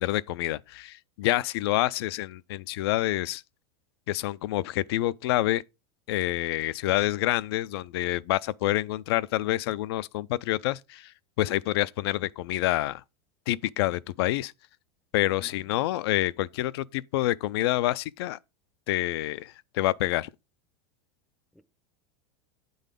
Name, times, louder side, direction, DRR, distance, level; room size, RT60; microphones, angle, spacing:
voice 1, 0.0-3.4 4.1-5.6 6.1-11.1 11.4-13.0 13.5-14.5 15.1-18.4 18.9-20.3, left 15 dB, 75° left, 0.4 m, -27 dB
voice 2, 15.2-16.1 21.5-21.6, equal, ahead, 0.5 m, -57 dB
8.2 x 3.9 x 5.1 m
supercardioid pair, 140°, 13 cm